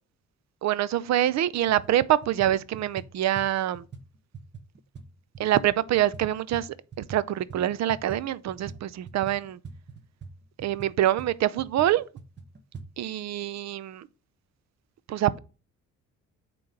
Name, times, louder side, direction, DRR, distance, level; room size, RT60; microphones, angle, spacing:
voice 1, 0.6-3.8 5.4-6.7 7.0-9.6 10.6-12.1 13.0-14.1 15.1-15.4, right 12 dB, 65° right, 0.5 m, -25 dB
sound 1, 1.1-1.2 1.6-7.2 7.5-12.9, right 4 dB, 35° right, 1.1 m, -44 dB
8.6 x 3.0 x 5.2 m
cardioid pair, 90°, 30 cm